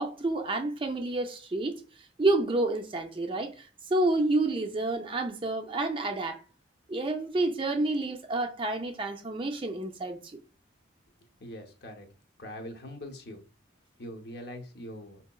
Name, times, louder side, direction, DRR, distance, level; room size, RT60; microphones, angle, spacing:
voice 1, 0.0-1.8 2.2-6.4 6.9-10.4, right 2 dB, 25° right, 0.4 m, -29 dB
voice 2, 11.4-12.1 12.4-13.4 14.0-15.2, left 1 dB, 55° left, 0.8 m, -42 dB
4.8 x 2.8 x 2.2 m
head